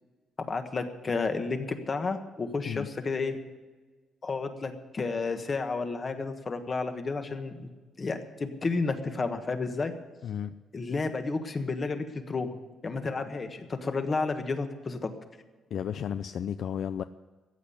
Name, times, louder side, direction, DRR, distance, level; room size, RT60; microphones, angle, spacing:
voice 1, 0.5-3.4 4.2-7.7 8.0-9.9 10.7-15.1, left 4 dB, 30° left, 7 dB, 1.4 m, -31 dB
voice 2, 10.2-10.6 15.7-17.0, left 8 dB, 55° left, 11 dB, 0.4 m, -33 dB
15.0 x 8.4 x 8.5 m, 1.3 s
cardioid pair, 135°, 0 cm